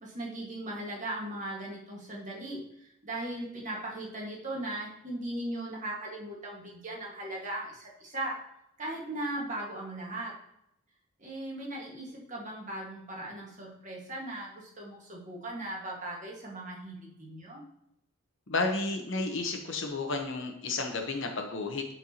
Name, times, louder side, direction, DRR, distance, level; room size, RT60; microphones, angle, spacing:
voice 1, 0.0-8.4 8.8-10.3 11.2-17.6, right 1 dB, 35° right, -2 dB, 1.8 m, -38 dB
voice 2, 18.5-21.9, left 3 dB, 60° left, 3 dB, 1.0 m, -32 dB
11.5 x 4.6 x 2.9 m, 0.79 s
head